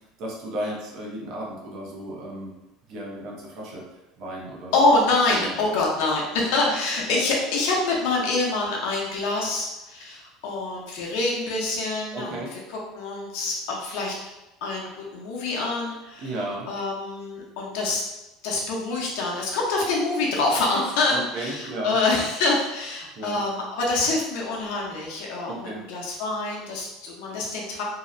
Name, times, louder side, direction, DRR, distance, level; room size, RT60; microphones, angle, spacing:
voice 1, 0.2-2.5 2.9-3.8 4.2-4.7 5.3-5.5 7.1-7.2 12.1-12.5 16.2-16.7 21.1-22.0 23.2-23.4 25.5-25.8, right 1 dB, 45° right, -2 dB, 0.6 m, -34 dB
voice 2, 4.7-14.1 14.6-16.4 16.7-18.0 18.4-27.8, left 2 dB, 70° left, -2 dB, 0.6 m, -26 dB
2.7 x 2.0 x 2.5 m, 0.99 s
cardioid pair, 170°, 0 cm